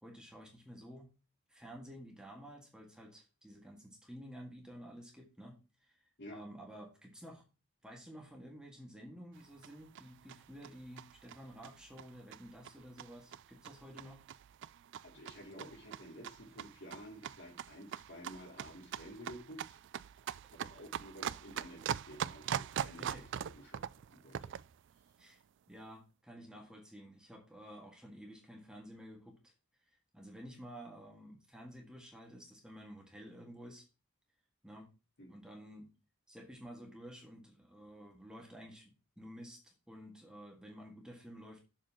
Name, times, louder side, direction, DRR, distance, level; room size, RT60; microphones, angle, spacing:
voice 1, 0.0-1.1 1.5-6.0 6.3-7.4 7.8-14.2 23.0-23.3 25.2-25.4 25.7-29.5 29.8-33.9 34.6-34.9 35.3-35.9 36.3-41.6, equal, 5° right, -1 dB, 1.8 m, -52 dB
sound 1, 9.4-24.8, right 9 dB, 55° right, 0.3 m, -43 dB
voice 2, 15.0-19.8 20.5-23.1 23.4-23.8 24.1-24.5 26.5-26.6 35.2-35.3, equal, 55° left, 0 dB, 3.0 m, -51 dB
7.3 x 4.5 x 5.7 m, 0.29 s
head